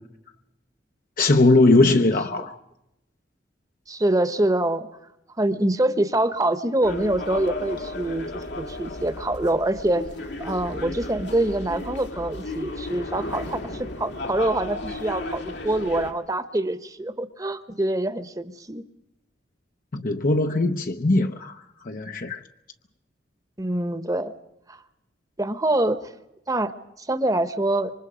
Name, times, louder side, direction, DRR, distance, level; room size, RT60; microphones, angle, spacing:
voice 1, 1.2-2.6 19.9-21.6 21.8-22.4, left 2 dB, 50° left, 0.9 m, -20 dB
voice 2, 1.8-2.5 3.9-4.9 5.4-10.0 10.4-18.8 23.6-24.3 24.7-24.8 25.4-26.1 26.5-26.7 27.0-27.9, right 1 dB, 20° right, 1.1 m, -25 dB
sound 1, 6.8-16.1, left 2 dB, 75° left, 2.2 m, -34 dB
27.0 x 24.5 x 5.1 m
head